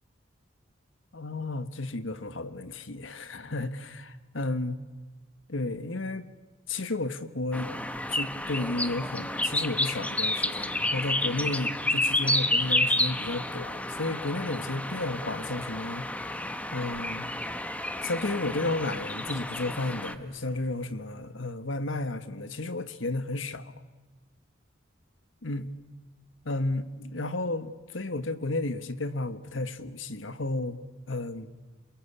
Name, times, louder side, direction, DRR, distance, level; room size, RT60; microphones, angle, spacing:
voice 1, 1.1-4.8 5.5-6.3 6.7-7.7 8.1-16.1 16.7-17.3 18.0-23.7 25.4-25.7 26.4-30.8 31.1-31.5, left 2 dB, 80° left, 11 dB, 1.5 m, -32 dB
sound 1, 7.5-20.1, left 1 dB, 5° left, 1.0 m, -30 dB
sound 2, 8.5-21.6, right 2 dB, 75° right, 3.0 m, -55 dB
28.0 x 22.0 x 8.6 m, 1.3 s
head